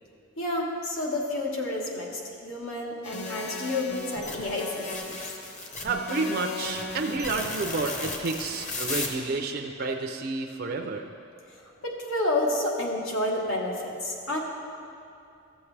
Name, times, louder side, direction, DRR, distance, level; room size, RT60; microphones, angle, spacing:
voice 1, 0.4-5.2 11.8-14.4, left 1 dB, 80° left, -1 dB, 1.4 m, -30 dB
sound 1, 3.0-9.1, left 3 dB, 35° left, 0.9 m, -35 dB
voice 2, 5.8-11.1, right 3 dB, 50° right, 3 dB, 0.4 m, -30 dB
14.5 x 7.1 x 3.3 m, 2.6 s
head